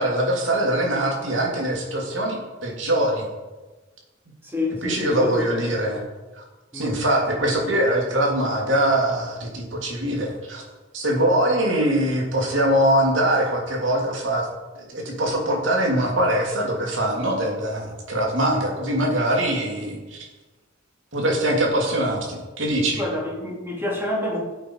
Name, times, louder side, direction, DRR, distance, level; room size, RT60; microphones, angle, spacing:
voice 1, 0.0-3.3 4.8-6.0 6.4-6.5 6.7-10.6 10.9-14.5 14.7-20.3 21.1-23.0, right 1 dB, 70° right, -1 dB, 3.0 m, -23 dB
voice 2, 4.4-5.6 6.7-7.4 23.0-24.4, left 1 dB, 15° right, -3 dB, 3.0 m, -28 dB
15.0 x 8.3 x 4.8 m, 1.2 s
head